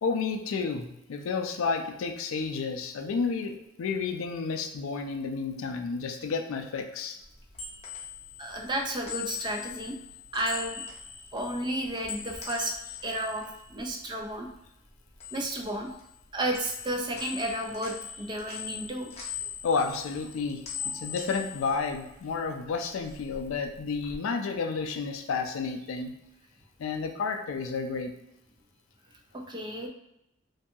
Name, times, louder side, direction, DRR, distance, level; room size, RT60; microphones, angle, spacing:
voice 1, 0.0-7.2 19.6-26.1 26.8-28.1, left 5 dB, 85° left, 5 dB, 0.4 m, -31 dB
sound 1, 7.2-14.6 14.9-16.3 16.5-22.5 22.8-24.2, left 7 dB, 35° left, 0.7 m, -41 dB
voice 2, 8.4-10.0 10.3-10.8 11.3-12.7 13.0-14.5 15.3-15.9 16.3-19.1 29.5-29.9, right 1 dB, 25° right, 2 dB, 0.3 m, -32 dB
2.6 x 2.3 x 2.6 m, 0.86 s
head